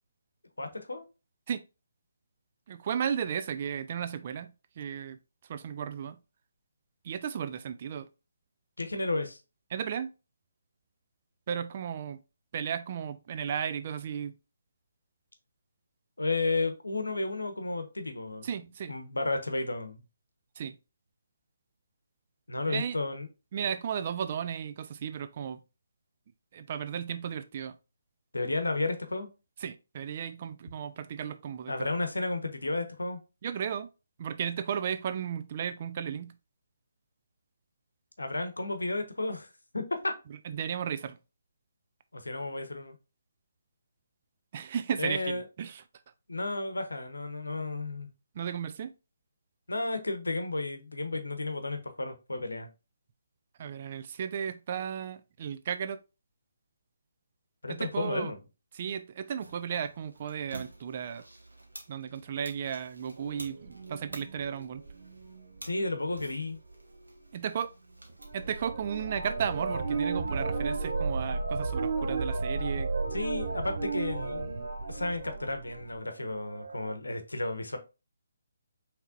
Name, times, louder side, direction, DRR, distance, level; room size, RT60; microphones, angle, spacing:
voice 1, 0.6-1.1 8.8-9.4 16.2-18.5 18.9-20.0 22.5-23.3 28.3-29.3 31.7-33.2 38.2-39.5 39.7-40.1 42.1-42.9 45.0-45.4 46.3-48.1 49.7-52.7 57.6-58.4 65.6-66.6 73.1-74.5 74.9-77.8, left 2 dB, 70° left, 0.9 m, -32 dB
voice 2, 2.7-5.2 5.5-6.2 7.0-8.1 9.7-10.1 11.5-12.2 12.5-14.3 18.4-18.9 20.6-20.7 22.7-23.0 23.5-25.6 26.5-27.8 29.6-31.7 33.4-33.9 34.2-36.3 40.5-41.2 44.5-45.8 48.4-48.9 53.6-56.0 57.7-58.3 58.7-61.2 61.9-64.8 67.3-67.7 68.3-72.9, right 8 dB, 35° right, 0.4 m, -34 dB
sound 1, 59.4-68.6, right 2 dB, 75° right, 1.2 m, -51 dB
sound 2, 63.2-65.6 68.2-76.0 76.3-76.9, right 3 dB, 50° right, 0.9 m, -34 dB
5.6 x 3.3 x 2.5 m
figure-of-eight pair, 140°, 0 cm